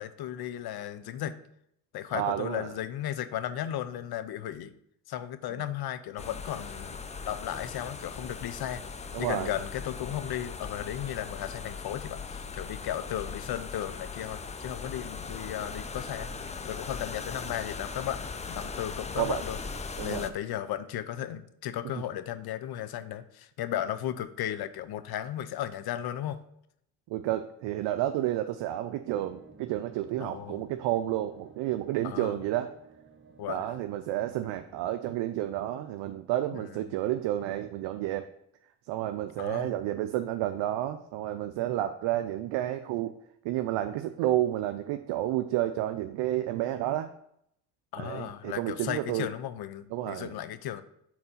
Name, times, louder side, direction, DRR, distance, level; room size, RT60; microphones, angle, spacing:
voice 1, 0.0-1.4 1.9-4.7 5.1-8.8 9.2-16.3 16.6-19.6 20.0-26.4 30.2-30.6 32.0-32.4 33.4-33.7 36.5-36.6 39.4-39.7 47.9-50.8, left 11 dB, 55° left, 13 dB, 0.6 m, -35 dB
voice 2, 2.1-2.7 9.1-9.6 19.2-19.4 20.0-20.3 21.9-22.0 27.1-32.7 33.5-38.3 38.9-43.1 43.4-47.1 48.0-49.3 49.9-50.3, right 13 dB, 65° right, 8 dB, 0.5 m, -30 dB
sound 1, 6.2-20.3, left 5 dB, 15° left, 0.4 m, -39 dB
sound 2, 29.1-34.8, right 5 dB, 25° right, 1.0 m, -55 dB
4.3 x 4.1 x 5.6 m, 0.74 s
hypercardioid pair, 55°, 47 cm